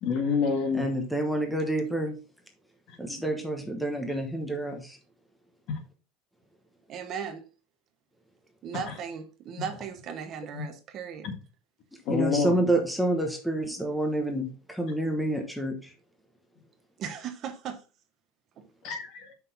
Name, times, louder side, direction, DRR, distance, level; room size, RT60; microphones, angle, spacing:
voice 1, 0.0-0.9 2.9-3.0 5.7-5.8 8.7-9.0 9.6-9.7 10.5-10.7 11.2-11.3 12.0-12.6 18.8-19.3, left 5 dB, 45° left, 1.7 m, -28 dB
voice 2, 0.7-2.2 3.0-5.0 11.9-15.9, right 1 dB, ahead, 1.0 m, -28 dB
voice 3, 6.9-7.5 8.6-11.3 17.0-17.8 18.6-18.7, right 7 dB, 35° right, 0.9 m, -37 dB
6.4 x 5.7 x 4.1 m
cardioid pair, 165°, 0 cm